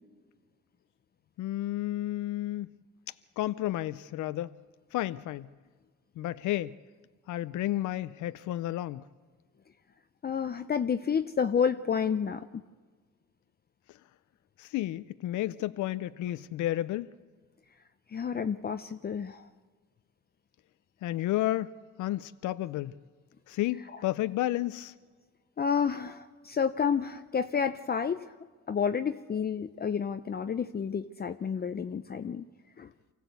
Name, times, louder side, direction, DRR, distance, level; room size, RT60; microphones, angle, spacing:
voice 1, 1.4-2.7 3.4-4.5 4.9-5.5 6.2-6.8 7.3-9.0 14.6-17.1 21.0-21.7 22.0-22.9 23.5-24.9, left 14 dB, 75° left, 0.6 m, -31 dB
voice 2, 10.2-12.5 18.1-19.5 23.9-24.0 25.6-28.2 28.7-32.4 32.8-32.9, left 7 dB, 30° left, 0.6 m, -30 dB
24.5 x 15.5 x 8.1 m
cardioid pair, 90°, 30 cm